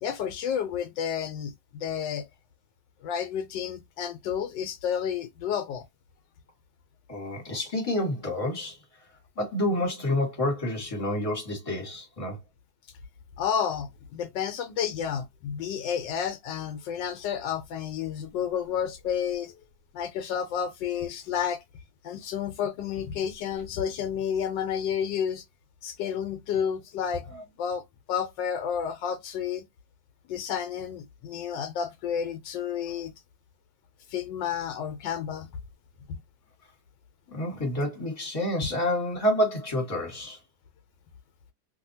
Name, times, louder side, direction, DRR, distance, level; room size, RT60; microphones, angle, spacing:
voice 1, 0.0-2.3 3.0-5.8 13.4-19.6 19.9-21.6 22.0-25.4 25.8-29.6 30.3-33.1 34.1-35.5 36.1-36.2, left 8 dB, 80° left, 1.3 m, -31 dB
voice 2, 7.1-8.8 9.4-12.4 27.3-27.4 37.3-40.4, left 1 dB, 20° left, 1.4 m, -28 dB
2.9 x 2.7 x 2.6 m
omnidirectional pair, 2.0 m